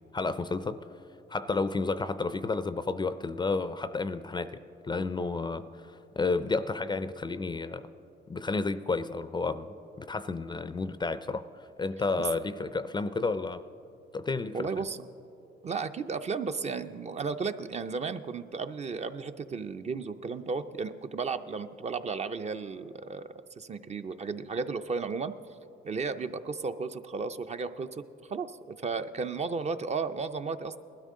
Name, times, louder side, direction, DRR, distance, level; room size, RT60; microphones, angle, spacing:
voice 1, 0.1-0.8 1.3-7.9 8.3-13.6 14.1-14.6, left 3 dB, 20° left, 13 dB, 0.4 m, -31 dB
voice 2, 14.5-15.0 15.6-23.3 23.6-25.3 25.8-30.8, right 4 dB, 35° right, 9 dB, 0.5 m, -34 dB
19.5 x 12.5 x 3.7 m, 2.9 s
cardioid pair, 90°, 20 cm